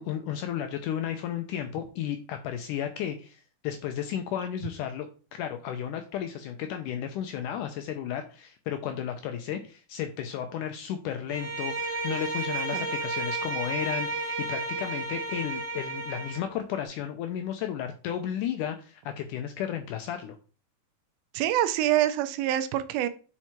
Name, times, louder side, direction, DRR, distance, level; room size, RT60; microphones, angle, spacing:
voice 1, 0.0-5.1 5.3-20.4, left 9 dB, 80° left, 1.9 m, -33 dB
Bowed string instrument, 11.3-16.5, right 3 dB, 50° right, 0.9 m, -32 dB
voice 2, 21.3-23.1, right 12 dB, 85° right, 2.4 m, -25 dB
6.0 x 4.4 x 4.3 m
omnidirectional pair, 4.2 m